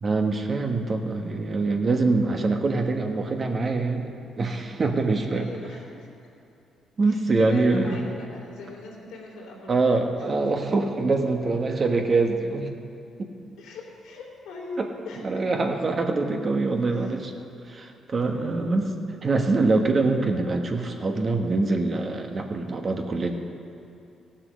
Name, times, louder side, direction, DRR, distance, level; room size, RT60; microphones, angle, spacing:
voice 1, 0.0-5.5 7.0-8.0 9.7-12.7 13.2-13.3 14.8-14.9 15.2-17.3 17.6-18.9 19.2-23.3, right 3 dB, 40° right, 3 dB, 1.3 m, -24 dB
voice 2, 5.3-6.1 7.1-9.9 11.6-11.7 13.6-15.2 16.9-17.1 18.3-18.7, left 3 dB, 90° left, -2 dB, 3.0 m, -40 dB
15.5 x 7.3 x 6.3 m, 2.8 s
cardioid pair, 90°, 0 cm